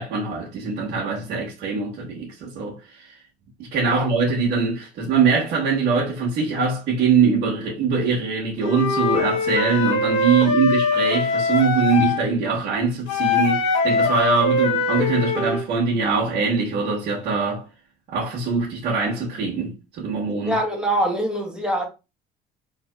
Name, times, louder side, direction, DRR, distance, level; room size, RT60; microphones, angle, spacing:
voice 1, 0.0-3.2 3.6-17.7 18.1-20.6, right 5 dB, 80° right, 1.3 m, -22 dB
Wind instrument woodwind instrument, 8.6-12.2 13.1-15.6, left 3 dB, 90° left, 1.1 m, -22 dB
voice 2, 20.5-21.9, right 1 dB, 5° right, 1.2 m, -24 dB
4.0 x 2.9 x 2.3 m
cardioid pair, 110°, 17 cm